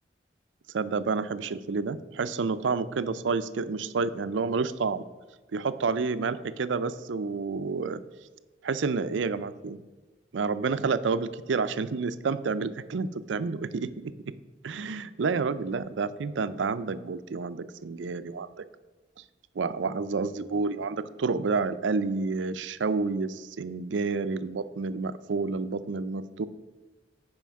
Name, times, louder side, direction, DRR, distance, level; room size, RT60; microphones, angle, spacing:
voice 1, 0.7-5.0 5.5-8.0 8.6-9.8 10.3-14.1 14.6-18.6 19.6-26.5, right 4 dB, 90° right, 14 dB, 0.5 m, -29 dB
9.2 x 4.9 x 6.2 m, 1.3 s
head